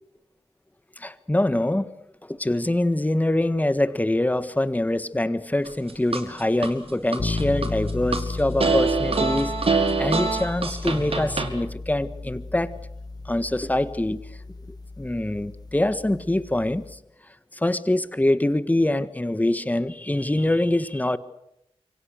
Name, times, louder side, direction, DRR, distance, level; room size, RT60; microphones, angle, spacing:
voice 1, 1.0-1.9 2.2-12.8 13.2-14.2 14.7-17.0 17.5-21.2, left 1 dB, 15° left, 13 dB, 1.5 m, -24 dB
sound 1, 5.7-6.7 7.1-8.2 8.6-11.5, right 4 dB, 65° right, 3.9 m, -24 dB
sound 2, 7.2-17.0, left 3 dB, 40° left, 1.7 m, -34 dB
27.5 x 25.0 x 6.6 m, 0.81 s
wide cardioid pair, 80°, 11 cm